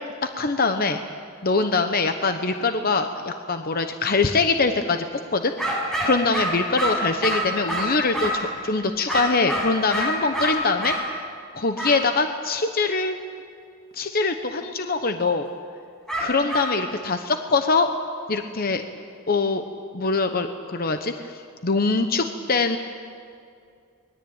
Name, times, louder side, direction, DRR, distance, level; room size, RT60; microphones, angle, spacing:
voice 1, 0.4-1.0 1.4-5.0 5.3-5.6 6.0-11.0 11.5-13.2 13.9-15.5 16.2-17.9 18.3-18.8 19.3-19.6 19.9-21.3 21.6-22.8, left 3 dB, 45° left, 7 dB, 1.0 m, -23 dB
sound 1, 5.6-8.5 9.1-11.0 11.8-12.0 16.1-16.7, equal, 5° left, 6.7 m, -26 dB
24.5 x 20.5 x 8.9 m, 2.4 s
head